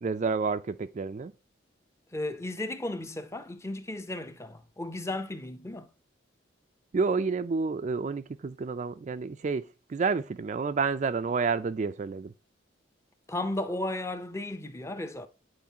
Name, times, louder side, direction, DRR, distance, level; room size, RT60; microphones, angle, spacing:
voice 1, 0.0-1.3 6.9-12.3, right 4 dB, 35° right, 0.3 m, -29 dB
voice 2, 2.1-5.9 13.3-15.3, left 1 dB, 15° left, 0.6 m, -34 dB
9.5 x 4.5 x 2.8 m
head